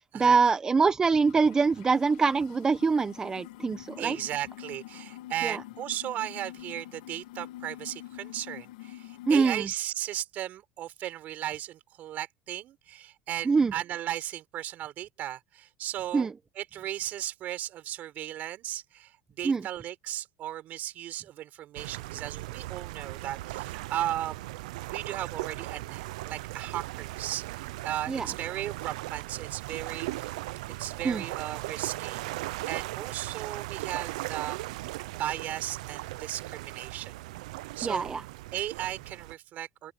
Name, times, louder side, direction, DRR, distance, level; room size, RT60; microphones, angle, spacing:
voice 1, 0.0-4.2 5.4-5.6 9.3-9.7 13.4-13.7 16.1-16.3 19.4-19.6 28.1-28.3 31.0-31.2 37.8-38.2, right 4 dB, 20° right, 0.9 m, -24 dB
sound 1, 1.2-9.6, left 15 dB, 90° left, 2.3 m, -46 dB
voice 2, 4.0-16.3 16.6-24.5 24.9-30.3 30.8-34.9 35.2-37.1 37.8-38.1 38.5-39.9, right 13 dB, 50° right, 6.8 m, -36 dB
sound 2, 21.8-39.3, right 19 dB, 90° right, 0.6 m, -38 dB
open air
supercardioid pair, 120°, 4 cm